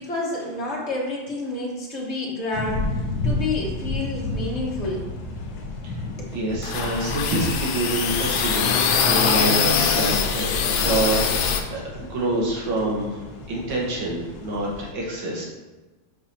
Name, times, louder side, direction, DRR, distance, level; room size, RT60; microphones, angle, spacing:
voice 1, 0.0-5.0 6.2-6.4, left 2 dB, 40° left, -4 dB, 1.5 m, -29 dB
sound 1, 2.5-14.9, left 2 dB, 60° left, 1.3 m, -33 dB
voice 2, 6.3-15.5, right 2 dB, 85° right, -3 dB, 2.2 m, -27 dB
sound 2, 6.6-11.6, left 6 dB, 80° left, 1.5 m, -22 dB
7.8 x 6.1 x 2.8 m, 1.2 s
omnidirectional pair, 2.1 m